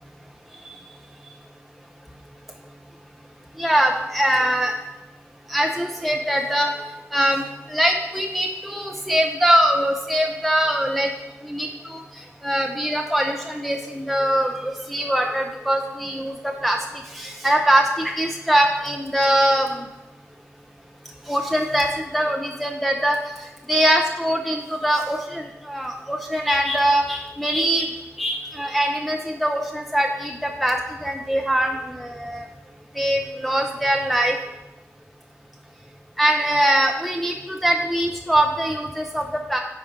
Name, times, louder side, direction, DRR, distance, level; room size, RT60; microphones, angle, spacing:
voice 1, 3.6-4.7 5.5-6.7 7.1-11.1 11.4-16.8 17.1-19.9 21.3-27.9 28.2-32.5 33.0-34.4 36.2-39.6, right 1 dB, ahead, 2 dB, 0.6 m, -22 dB
10.0 x 4.1 x 5.2 m, 0.97 s
wide cardioid pair, 95°, 5 cm